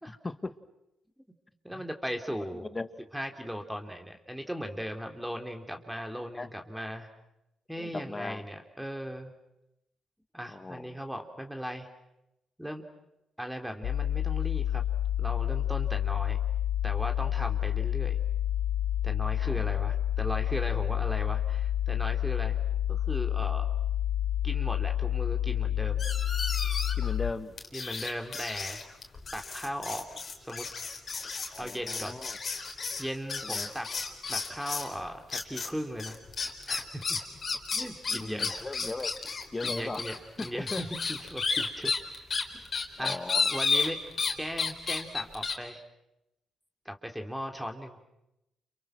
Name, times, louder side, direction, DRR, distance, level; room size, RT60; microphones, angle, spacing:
voice 1, 0.1-0.5 1.7-1.8 2.7-2.9 6.4-6.5 7.8-8.4 10.5-11.0 19.4-19.8 27.0-27.5 31.5-32.4 33.4-33.7 38.1-39.1 39.5-40.0 40.4-40.8 43.0-43.5, left 3 dB, 25° left, 12 dB, 1.8 m, -38 dB
voice 2, 1.6-2.7 3.1-7.1 7.7-9.3 10.3-11.9 12.6-12.8 13.4-14.8 15.2-16.4 16.8-18.2 19.0-22.6 22.9-23.7 24.4-26.0 27.7-28.8 29.3-30.0 30.4-30.7 31.6-32.2 33.0-33.9 34.3-36.2 36.7-37.2 37.7-38.6 39.6-42.2 42.5-42.6 43.0-43.2 43.5-44.0 44.4-45.8 46.8-48.0, equal, 5° right, 4 dB, 3.5 m, -37 dB
sound 1, 13.8-27.3, left 11 dB, 65° left, 1.0 m, -29 dB
sound 2, 26.0-27.1 27.6-34.9 35.3-35.7 36.0-44.3 44.6-45.5, left 4 dB, 45° left, 4.1 m, -32 dB
30.0 x 29.0 x 6.2 m, 0.89 s
hypercardioid pair, 40°, 0 cm